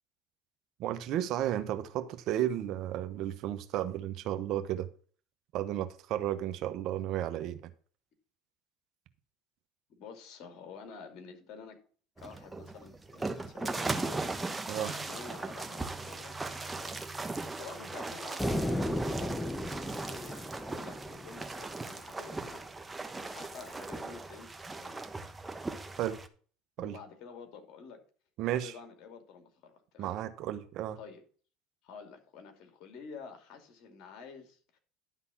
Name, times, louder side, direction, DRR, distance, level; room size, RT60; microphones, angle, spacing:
voice 1, 0.8-4.9 5.5-7.7 14.7-14.9 26.0-26.2 26.8-27.0 28.4-28.7 30.0-31.0, right 12 dB, 60° right, 11 dB, 1.0 m, -33 dB
voice 2, 10.0-11.8 12.2-14.2 14.8-16.4 16.7-17.0 17.5-19.7 19.9-25.1 26.8-28.0 28.5-30.2 31.0-31.2 31.8-34.8, left 5 dB, 60° left, 5 dB, 2.6 m, -49 dB
sound 1, 12.2-26.3, right 3 dB, 15° right, 1.1 m, -38 dB
sound 2, 18.4-21.8, equal, 5° left, 0.7 m, -34 dB
11.0 x 4.0 x 7.1 m, 0.42 s
hypercardioid pair, 85°, 0 cm